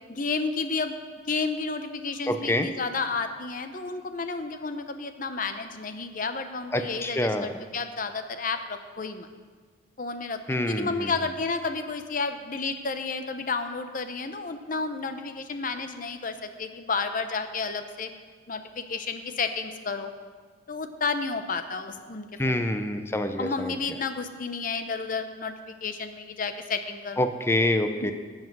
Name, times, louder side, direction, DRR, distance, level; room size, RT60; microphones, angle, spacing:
voice 1, 0.1-0.9 1.3-9.3 10.0-18.1 18.5-20.1 20.7-22.7 23.4-27.2 28.0-28.1, left 4 dB, 45° left, 8 dB, 0.8 m, -31 dB
voice 2, 2.3-2.7 6.7-7.5 10.5-11.1 22.4-23.7 27.2-28.1, left 1 dB, 15° left, 7 dB, 0.6 m, -26 dB
13.5 x 7.4 x 6.1 m, 1.5 s
head